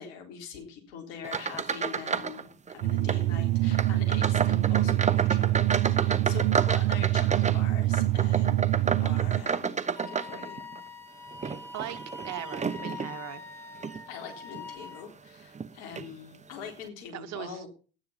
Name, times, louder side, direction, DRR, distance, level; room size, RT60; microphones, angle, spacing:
voice 1, 0.0-8.7 9.0-10.6 14.1-17.7, left 7 dB, 70° left, 3 dB, 3.7 m, -43 dB
sound 1, 1.2-2.4 2.7-3.2 3.7-10.8 11.3-13.1 13.7-14.0 14.5-14.7 15.5-15.7 16.0-16.1, right 6 dB, 20° right, 1.0 m, -31 dB
sound 2, 2.8-9.4, right 15 dB, 70° right, 0.8 m, -25 dB
Wind instrument woodwind instrument, 10.0-15.1, left 4 dB, 5° left, 1.1 m, -43 dB
voice 2, 11.7-13.4 17.1-17.6, right 12 dB, 50° right, 11 dB, 1.3 m, -39 dB
12.0 x 10.0 x 5.6 m, 0.39 s
hypercardioid pair, 60°, 33 cm